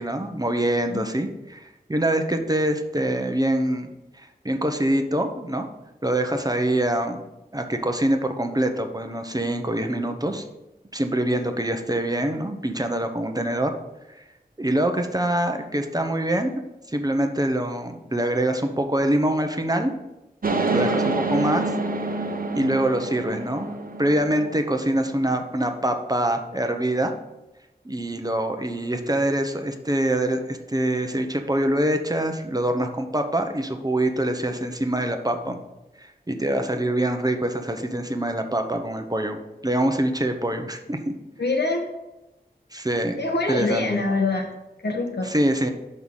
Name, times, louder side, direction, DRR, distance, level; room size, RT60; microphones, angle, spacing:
voice 1, 0.0-3.9 4.2-5.7 6.0-7.2 7.5-10.4 10.9-13.7 14.6-16.5 16.9-19.9 20.7-21.7 22.5-27.1 27.8-35.6 36.0-41.1 42.7-43.2 43.5-44.0 45.2-45.7, right 1 dB, 20° right, 5 dB, 0.8 m, -24 dB
sound 1, 20.4-24.9 25.3-25.4 25.7-25.8, right 2 dB, 55° right, 0.8 m, -27 dB
voice 2, 41.4-41.8 43.2-44.5 44.8-45.3, left 3 dB, 75° left, 2 dB, 1.3 m, -24 dB
5.7 x 5.5 x 6.4 m, 0.97 s
wide cardioid pair, 65°, 17 cm